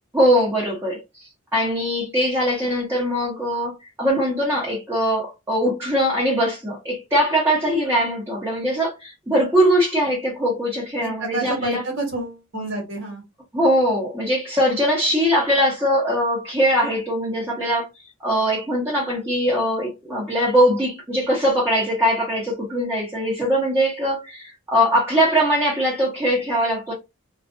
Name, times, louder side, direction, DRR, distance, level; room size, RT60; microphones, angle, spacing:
voice 1, 0.1-11.8 13.5-26.9, equal, 15° right, 0.9 m, -21 dB
voice 2, 11.0-13.2, right 2 dB, 60° right, 1.2 m, -28 dB
2.4 x 2.2 x 2.5 m
head